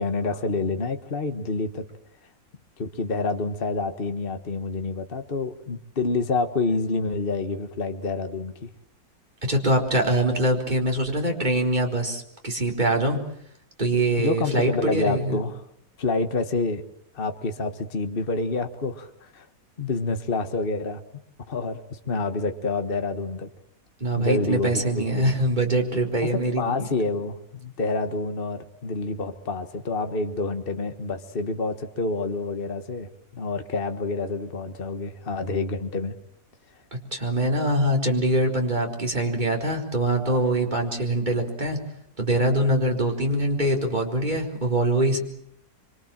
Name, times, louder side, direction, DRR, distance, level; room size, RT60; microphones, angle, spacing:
voice 1, 0.0-1.9 2.8-8.7 14.2-15.6 16.0-16.8 17.1-19.5 19.8-21.0 21.5-23.5 24.2-25.4 26.2-36.1, left 3 dB, 35° left, 8 dB, 1.6 m, -28 dB
voice 2, 9.4-13.2 13.8-15.4 24.0-26.9 36.9-41.8 42.2-45.2, right 1 dB, 30° right, 1 dB, 4.7 m, -23 dB
26.5 x 25.0 x 7.4 m, 0.70 s
omnidirectional pair, 1.6 m